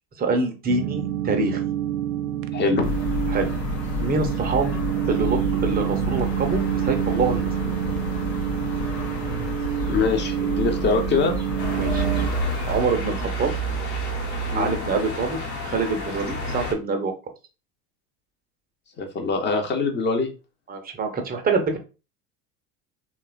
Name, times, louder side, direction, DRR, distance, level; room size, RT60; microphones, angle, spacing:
voice 1, 0.2-1.6 3.3-3.5 4.0-4.8 5.1-7.4 11.7-12.0 12.7-13.5 14.5-17.1 20.7-21.8, right 4 dB, 20° right, 5 dB, 0.6 m, -25 dB
sound 1, 0.7-12.3, right 12 dB, 60° right, 0.5 m, -27 dB
voice 2, 2.5-2.9 9.9-11.3 14.5-14.7 19.0-20.3, left 4 dB, 25° left, 4 dB, 0.6 m, -23 dB
sound 2, 2.8-12.8, left 2 dB, 80° left, 0.7 m, -30 dB
sound 3, 11.6-16.7, right 2 dB, 50° left, 1.0 m, -28 dB
3.0 x 2.2 x 2.3 m, 0.31 s
hypercardioid pair, 80°, 48 cm